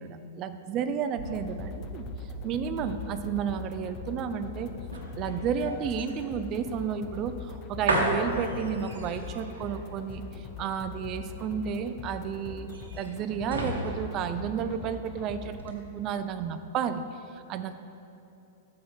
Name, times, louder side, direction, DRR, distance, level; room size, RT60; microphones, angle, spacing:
voice 1, 0.0-2.0 2.4-4.7 5.2-12.7 13.0-17.0 17.3-17.7, right 7 dB, 40° right, 10 dB, 0.4 m, -32 dB
sound 1, 0.8-15.1 15.5-15.7, right 1 dB, 85° right, 1.2 m, -36 dB
sound 2, 1.2-15.6, left 6 dB, 40° left, 0.5 m, -42 dB
6.7 x 5.4 x 5.4 m, 2.8 s
hypercardioid pair, 115°, 0 cm